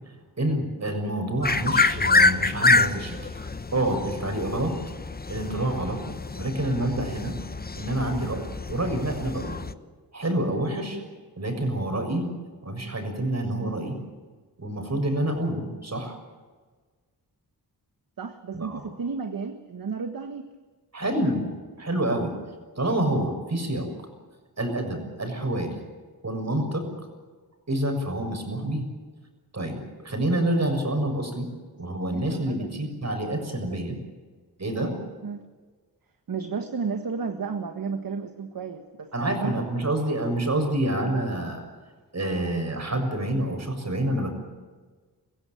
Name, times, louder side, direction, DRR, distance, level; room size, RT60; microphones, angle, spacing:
voice 1, 0.4-4.8 5.3-6.0 6.3-7.4 7.8-9.6 10.1-11.0 11.4-12.2 12.6-14.0 14.6-16.1 18.5-18.8 20.9-21.5 21.8-22.3 22.8-23.9 24.6-25.7 26.2-26.9 27.7-28.8 29.5-31.5 31.8-33.9 34.6-34.9 39.1-41.6 42.1-44.3, right 1 dB, 40° right, 5 dB, 6.7 m, -27 dB
sound 1, 1.4-9.7, left 3 dB, 25° left, 1.0 m, -26 dB
voice 2, 18.2-20.5 32.1-32.8 33.7-33.8 35.2-35.4 36.3-39.7, right 5 dB, 60° right, 6 dB, 1.6 m, -33 dB
24.0 x 15.5 x 9.1 m, 1.4 s
cardioid pair, 65°, 39 cm